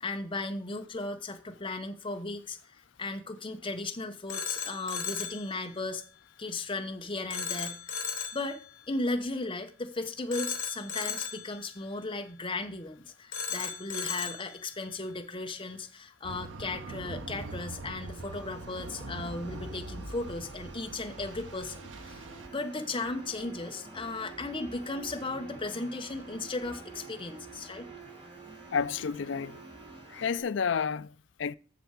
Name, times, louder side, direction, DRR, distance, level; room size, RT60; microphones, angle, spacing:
voice 1, 0.0-2.6 3.0-6.0 6.4-8.1 8.3-22.2 22.5-27.9, left 2 dB, 25° left, 1.1 m, -36 dB
Telephone, 4.3-5.5 7.3-8.5 10.3-11.5 13.3-14.5, left 6 dB, 85° left, 1.5 m, -35 dB
sound 1, 16.2-22.5, right 2 dB, 85° right, 0.9 m, -42 dB
sound 2, 18.0-30.4, right 3 dB, 30° right, 3.1 m, -49 dB
voice 2, 28.7-29.6 30.1-31.6, left 6 dB, 70° left, 0.4 m, -31 dB
7.9 x 7.0 x 8.3 m
head